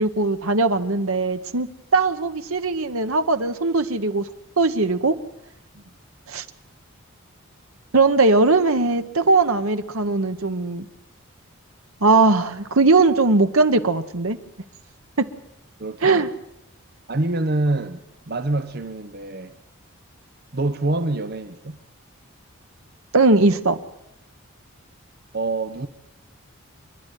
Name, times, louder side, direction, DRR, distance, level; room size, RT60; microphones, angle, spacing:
voice 1, 0.0-4.3 4.6-5.1 6.3-6.4 7.9-10.9 12.0-14.4 15.2-15.3 16.0-16.3 23.1-23.8, right 3 dB, 80° right, 1.3 m, -19 dB
voice 2, 15.8-16.3 17.1-18.0 18.3-19.5 20.5-21.8 25.3-25.9, right 2 dB, 45° right, 0.9 m, -25 dB
27.0 x 11.5 x 9.3 m
head